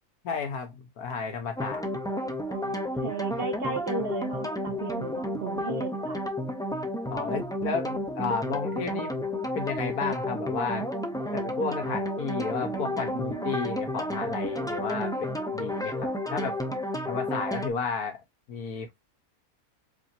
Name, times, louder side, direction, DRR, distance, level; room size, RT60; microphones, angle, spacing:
voice 1, 0.2-1.9 7.1-9.3 9.6-10.9 11.3-16.6 17.1-18.2 18.5-19.0, left 5 dB, 85° left, 1.7 m, -32 dB
sound 1, 1.6-17.7, left 1 dB, 5° left, 0.3 m, -31 dB
voice 2, 2.5-6.2 12.7-13.6, right 4 dB, 55° right, 0.7 m, -35 dB
5.0 x 3.5 x 2.8 m
omnidirectional pair, 1.5 m